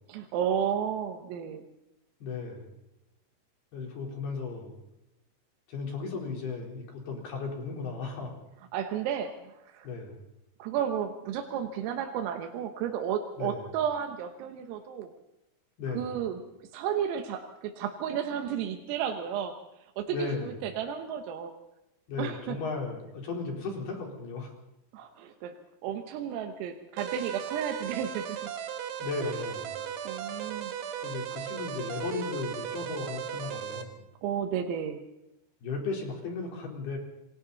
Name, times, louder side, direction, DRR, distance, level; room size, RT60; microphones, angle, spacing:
voice 1, 0.1-1.7 8.7-9.9 10.6-15.1 15.9-16.4 16.7-19.6 20.0-21.5 22.2-22.6 24.9-25.6 25.8-28.4 29.2-29.4 30.1-30.7 34.2-35.0, right 8 dB, 85° right, 4 dB, 4.0 m, -32 dB
voice 2, 2.2-2.7 3.7-4.8 5.7-8.3 9.8-10.2 13.4-13.6 15.8-16.1 20.1-20.5 22.1-24.5 29.0-29.8 31.0-33.9 35.6-37.0, left 4 dB, 55° left, 0 dB, 5.9 m, -35 dB
sound 1, 27.0-33.8, right 9 dB, 70° right, 3.8 m, -36 dB
27.5 x 23.5 x 4.2 m, 0.89 s
omnidirectional pair, 5.8 m